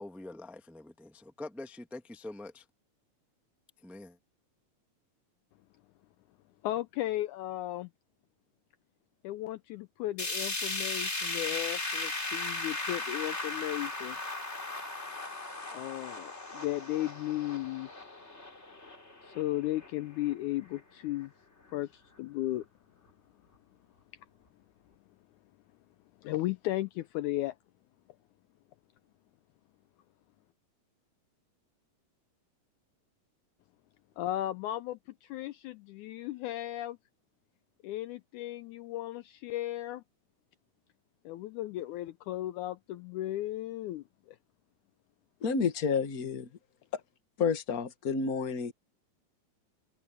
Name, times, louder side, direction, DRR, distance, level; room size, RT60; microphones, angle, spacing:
voice 1, 0.0-2.6 3.8-4.2, left 2 dB, ahead, 0.8 m, -45 dB
voice 2, 6.6-7.9 9.2-14.2 15.7-17.9 19.2-21.3 21.7-22.7 26.2-27.5 34.2-37.0 37.8-40.0 41.2-44.4, left 15 dB, 80° left, 1.8 m, -35 dB
sound 1, 10.2-20.3 20.7-20.8 21.2-21.3 22.2-22.3, left 2 dB, 20° left, 3.3 m, -37 dB
voice 3, 45.4-46.5 46.9-47.0 47.4-48.7, left 5 dB, 45° left, 1.1 m, -30 dB
omnidirectional pair, 3.9 m